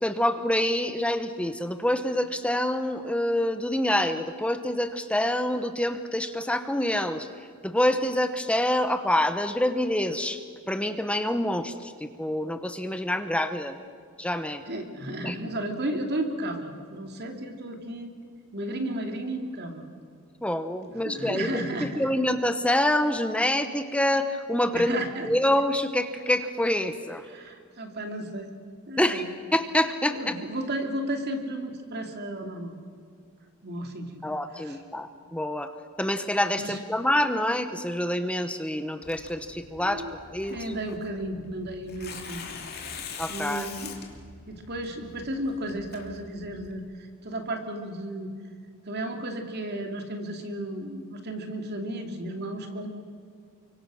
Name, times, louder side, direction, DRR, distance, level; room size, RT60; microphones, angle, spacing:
voice 1, 0.0-7.3 7.6-10.4 10.7-13.8 14.2-14.6 15.2-15.4 20.4-25.0 25.2-27.2 29.0-29.2 29.5-30.3 34.2-35.7 36.0-40.0 40.3-40.7 43.2-43.7, left 1 dB, 5° left, 8 dB, 1.1 m, -26 dB
voice 2, 14.7-18.2 18.5-19.8 20.9-22.1 24.7-25.3 27.3-28.5 28.9-29.4 30.1-32.7 33.6-34.2 34.6-34.8 36.6-36.8 39.8-40.2 40.5-42.6 43.3-43.9 44.5-48.3 48.8-52.9, right 1 dB, 50° right, 4 dB, 2.8 m, -34 dB
Tearing, 39.0-46.8, left 5 dB, 45° left, 2.9 m, -43 dB
29.5 x 24.5 x 6.4 m, 2.1 s
head